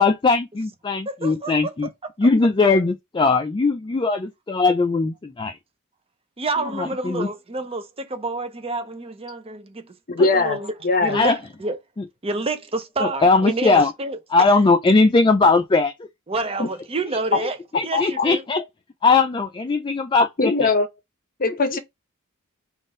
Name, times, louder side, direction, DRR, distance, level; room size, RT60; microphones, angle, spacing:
voice 1, 0.0-1.9 2.2-5.6 6.8-7.3 11.1-11.4 13.0-13.9 14.3-15.9 17.4-17.5 17.7-18.6 19.0-20.7, left 3 dB, 20° left, 0.3 m, -19 dB
voice 2, 1.1-1.7 6.4-10.7 11.0-11.8 12.2-14.2 16.3-17.6 17.8-18.4, right 2 dB, 25° right, 0.7 m, -28 dB
voice 3, 10.1-11.2 16.6-16.7 17.9-18.3 20.4-20.9 21.4-21.8, left 3 dB, 40° left, 0.7 m, -21 dB
3.7 x 2.5 x 3.7 m
head